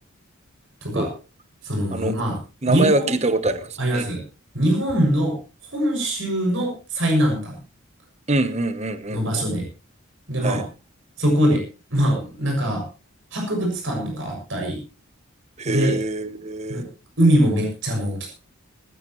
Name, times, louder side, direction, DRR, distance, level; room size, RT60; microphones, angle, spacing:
voice 1, 1.6-2.4 2.7-3.2 3.8-4.2 4.5-5.4 5.7-7.6 9.1-9.7 10.3-10.6 11.2-11.6 11.9-12.8 13.3-14.8 15.6-15.9 16.7-16.9 17.2-18.3, equal, 65° right, 1 dB, 7.0 m, -22 dB
voice 2, 2.6-4.1 8.3-9.4 10.4-10.6 15.6-16.8, right 2 dB, 30° right, 11 dB, 1.1 m, -24 dB
20.0 x 15.0 x 3.2 m, 0.33 s
head